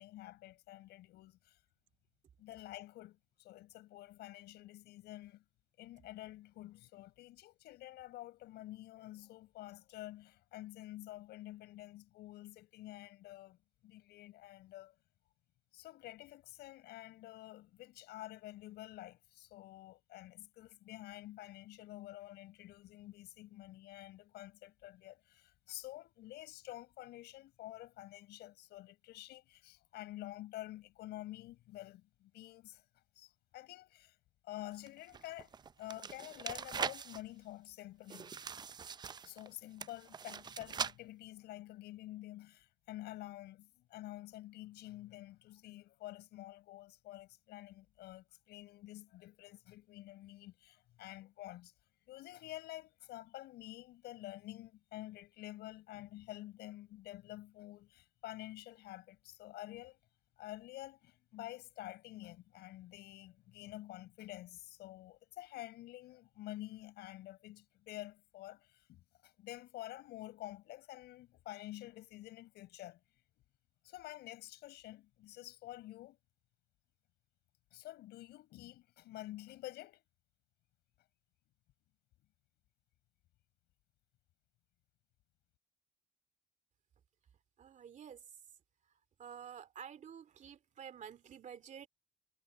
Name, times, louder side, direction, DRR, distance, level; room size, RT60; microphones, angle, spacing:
voice 1, 0.0-1.6 2.4-5.4 5.8-14.9 15.7-32.8 33.1-34.1 34.4-38.3 39.2-51.7 52.1-60.0 60.4-73.0 73.8-76.2 77.7-80.0, left 16 dB, 80° left, 5.2 m, -49 dB
sound 1, 34.7-37.2 38.1-39.5 39.8-40.9, right 6 dB, 25° right, 0.4 m, -42 dB
voice 2, 87.6-88.2 89.2-91.9, right 8 dB, 45° right, 2.5 m, -50 dB
cardioid pair, 110°, 17 cm